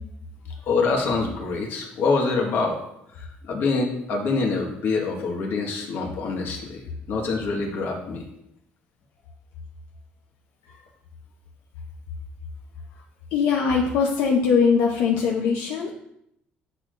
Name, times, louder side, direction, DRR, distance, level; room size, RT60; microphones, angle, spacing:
voice 1, 0.7-2.8 3.2-8.2, left 4 dB, 70° left, 1 dB, 1.6 m, -25 dB
voice 2, 13.3-15.9, left 5 dB, 90° left, -1 dB, 0.9 m, -21 dB
8.5 x 6.6 x 2.6 m, 0.77 s
cardioid pair, 115°, 4 cm